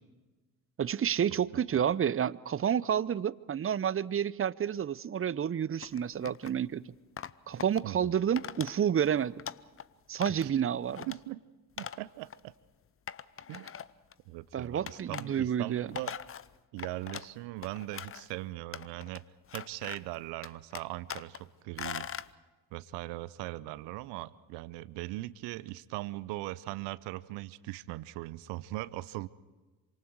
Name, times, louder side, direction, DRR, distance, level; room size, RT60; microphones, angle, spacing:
voice 1, 0.8-6.9 7.5-9.3 10.1-11.1 14.5-15.9, right 8 dB, 30° right, 0.7 m, -30 dB
sound 1, 5.8-6.6 7.2-7.8 8.4-8.7 9.1-9.9 10.2-10.6 10.9-11.2 11.8-12.0 12.3-12.4 13.1-14.1 14.9-15.3 15.7-17.3 17.6-18.3 18.7-19.2 19.5-20.2 20.4-21.4 21.8-22.3, left 8 dB, 30° left, 0.8 m, -41 dB
voice 2, 11.1-11.4 11.8-12.5 13.5-13.7 14.3-16.2 16.7-19.2 19.5-22.1 22.7-29.3, right 18 dB, 65° right, 0.8 m, -40 dB
27.5 x 26.0 x 4.7 m
hypercardioid pair, 50°, 44 cm